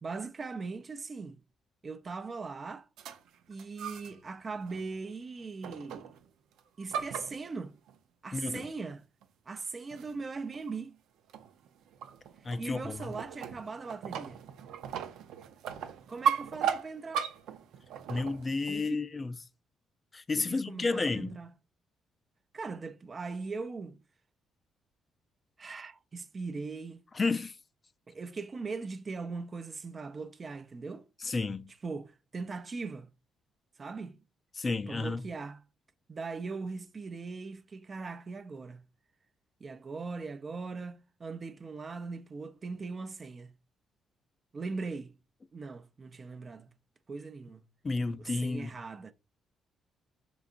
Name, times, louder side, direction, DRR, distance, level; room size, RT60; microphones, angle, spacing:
voice 1, 0.0-1.4 1.8-2.9 3.5-6.1 6.8-7.8 8.2-9.0 9.5-11.0 12.6-14.4 16.1-17.3 18.7-19.0 20.3-21.5 22.5-24.0 25.6-27.0 28.1-31.1 31.8-33.1 33.8-34.2 34.9-35.6 36.1-38.8 39.6-43.5 44.5-45.1 45.5-46.7 47.1-47.6 48.2-49.1, right 4 dB, 35° right, 0.5 m, -40 dB
sound 1, 3.0-4.2 4.6-5.0 5.6-6.3 6.6-7.9 8.6-8.7 9.2-9.3 9.9-10.3 10.5-10.8 11.3-18.7, right 8 dB, 85° right, 0.5 m, -37 dB
voice 2, 8.3-8.7 12.4-13.1 18.1-19.3 20.1-21.4 27.1-27.6 31.2-31.7 34.6-35.2 47.8-48.8, left 3 dB, 30° left, 0.4 m, -31 dB
5.0 x 3.9 x 2.4 m
cardioid pair, 90°, 0 cm